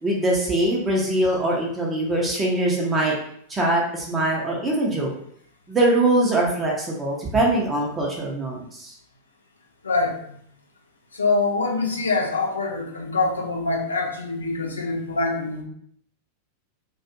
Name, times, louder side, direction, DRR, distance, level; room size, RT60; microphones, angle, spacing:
voice 1, 0.0-3.1 3.5-5.1 5.7-8.9, right 1 dB, 15° right, -3 dB, 0.6 m, -22 dB
voice 2, 9.8-10.4 11.1-15.6, left 3 dB, 75° left, 0 dB, 0.5 m, -24 dB
2.4 x 2.2 x 2.8 m, 0.66 s
figure-of-eight pair, 90°, 0 cm